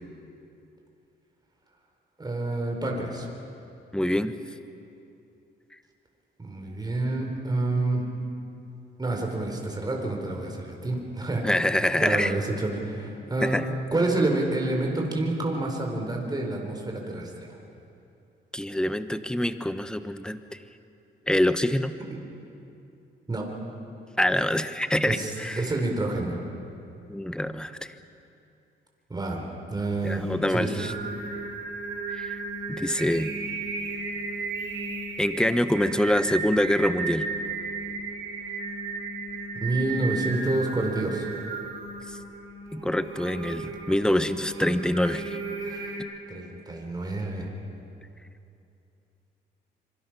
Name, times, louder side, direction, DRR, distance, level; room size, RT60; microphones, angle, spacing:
voice 1, 2.2-3.3 6.4-8.0 9.0-11.4 12.0-13.6 13.9-17.5 22.1-22.2 23.3-23.5 25.1-26.4 29.1-30.2 30.5-30.7 39.5-41.3 43.6-43.8 45.6-46.0 46.3-47.5, right 2 dB, 20° right, 1 dB, 4.5 m, -28 dB
voice 2, 3.9-4.3 11.4-12.3 13.4-13.8 18.5-20.4 21.3-21.9 24.2-25.6 27.1-27.7 30.0-30.9 32.1-32.4 32.7-33.3 35.2-37.2 42.1-42.2 42.7-45.4, left 1 dB, 5° left, 11 dB, 1.1 m, -25 dB
Singing, 30.0-46.0, right 3 dB, 85° right, 7.9 m, -34 dB
26.0 x 24.0 x 6.1 m, 2.7 s
cardioid pair, 90°, 20 cm